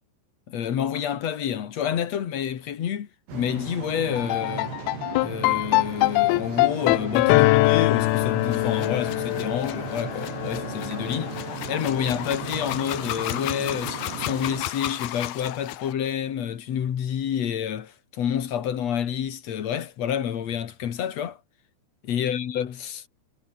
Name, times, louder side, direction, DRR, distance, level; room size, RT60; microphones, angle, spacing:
voice 1, 0.5-4.7 5.2-11.4 11.7-21.4 22.0-23.1, left 9 dB, 50° left, 2.3 m, -28 dB
sound 1, 3.3-14.7, right 6 dB, 75° right, 7.1 m, -37 dB
sound 2, 4.1-12.4, left 22 dB, 85° left, 2.2 m, -23 dB
sound 3, 8.1-15.9, left 14 dB, 70° left, 2.8 m, -35 dB
omnidirectional pair, 5.0 m